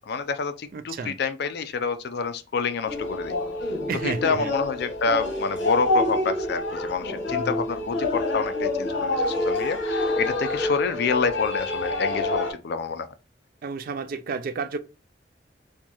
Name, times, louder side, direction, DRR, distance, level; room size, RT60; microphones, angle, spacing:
voice 1, 0.1-3.3 4.0-13.1, left 5 dB, 60° left, 0.4 m, -28 dB
voice 2, 0.7-1.2 3.9-4.5 7.3-7.6 13.6-14.8, right 4 dB, 50° right, 0.3 m, -31 dB
sound 1, 2.9-12.5, left 2 dB, 85° left, 1.2 m, -27 dB
4.4 x 2.3 x 2.9 m
head